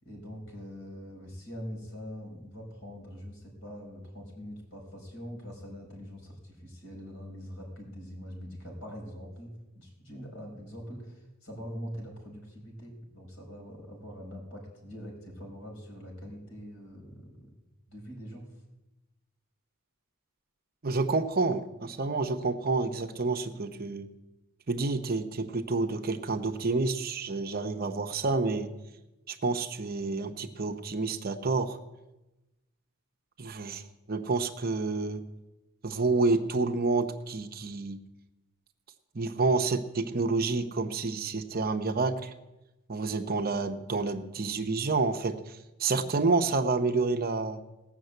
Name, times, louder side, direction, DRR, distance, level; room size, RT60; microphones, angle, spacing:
voice 1, 0.0-17.5 17.9-18.4, equal, 65° left, 1 dB, 5.1 m, -43 dB
voice 2, 20.8-24.1 24.7-28.7 29.3-31.8 33.4-35.2 35.8-38.0 39.1-42.3 42.9-47.6, right 3 dB, 45° right, 7 dB, 0.8 m, -29 dB
18.5 x 6.6 x 8.0 m, 1.0 s
head